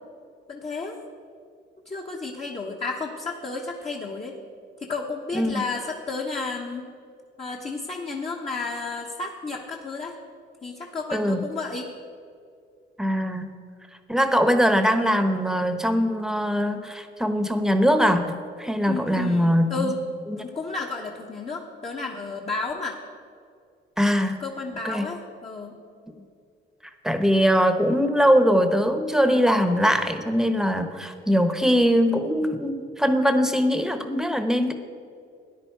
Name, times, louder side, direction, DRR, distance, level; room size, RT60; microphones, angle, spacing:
voice 1, 0.5-1.0 1.9-4.4 4.8-6.9 7.4-10.2 10.6-11.9 14.2-14.3 18.9-20.0 20.3-23.0 24.4-25.8, left 3 dB, 30° left, -1 dB, 1.2 m, -32 dB
voice 2, 11.1-11.4 13.0-13.5 14.1-19.9 20.3-20.4 24.0-24.4 24.8-25.1 27.0-34.7, equal, ahead, 7 dB, 1.0 m, -22 dB
13.5 x 10.0 x 4.6 m, 2.4 s
cardioid pair, 90°, 20 cm